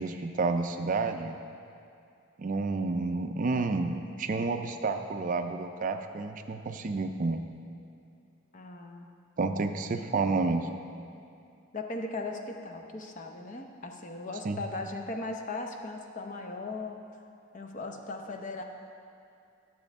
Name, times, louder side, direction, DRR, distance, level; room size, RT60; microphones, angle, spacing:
voice 1, 0.0-1.4 2.4-7.4 9.4-10.7 14.4-14.6, right 3 dB, 40° right, 7 dB, 0.4 m, -30 dB
voice 2, 8.5-9.1 11.7-17.0 17.5-18.6, left 2 dB, 35° left, 3 dB, 0.6 m, -38 dB
12.0 x 7.6 x 3.6 m, 2.4 s
head